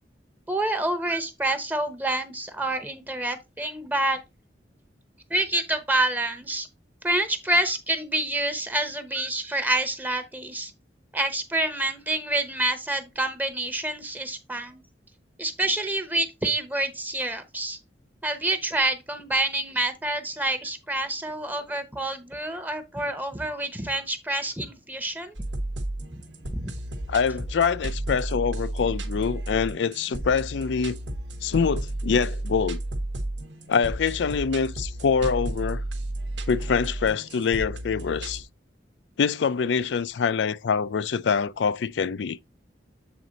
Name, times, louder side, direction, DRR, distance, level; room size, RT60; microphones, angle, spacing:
voice 1, 0.5-4.2 5.3-6.7 7.0-10.7 11.1-14.8 15.4-17.8 18.2-25.3 26.5-26.7, right 2 dB, 10° right, 0.8 m, -27 dB
sound 1, 25.4-38.4, right 1 dB, 85° right, 1.2 m, -33 dB
voice 2, 27.1-31.0 31.4-32.8 33.7-35.8 36.5-38.4 39.2-42.4, left 6 dB, 80° left, 0.4 m, -25 dB
7.7 x 4.0 x 3.9 m
head